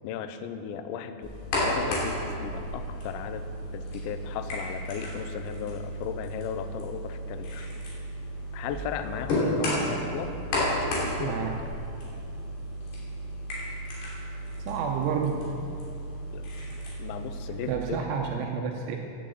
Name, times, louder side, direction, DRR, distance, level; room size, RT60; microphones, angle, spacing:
voice 1, 0.0-1.3 1.6-7.7 8.5-11.6 16.3-16.4 17.0-18.1, left 8 dB, 80° left, 9 dB, 2.7 m, -36 dB
sound 1, 1.2-17.7, equal, 55° left, 4.5 m, -33 dB
voice 2, 11.2-11.6 14.6-15.4 17.7-19.0, right 6 dB, 80° right, 2 dB, 3.0 m, -29 dB
11.5 x 10.0 x 7.7 m, 2.7 s
omnidirectional pair, 5.8 m